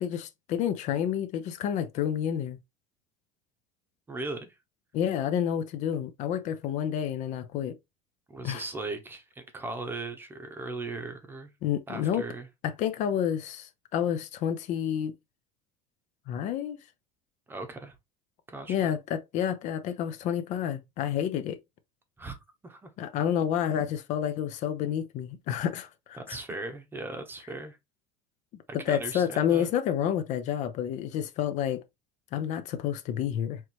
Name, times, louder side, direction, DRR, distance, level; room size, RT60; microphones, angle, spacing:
voice 1, 0.0-2.6 4.9-7.8 8.4-8.6 11.6-12.3 12.6-15.1 16.3-16.8 18.7-21.6 23.0-26.4 28.7-31.8 32.3-33.6, left 9 dB, 50° left, 0.6 m, -29 dB
voice 2, 4.1-4.5 8.3-11.5 11.9-12.5 17.5-17.9 18.5-18.9 22.2-22.4 22.6-22.9 26.2-27.8 28.9-29.7, right 3 dB, 15° right, 0.8 m, -38 dB
4.5 x 3.1 x 2.9 m
cardioid pair, 145°, 16 cm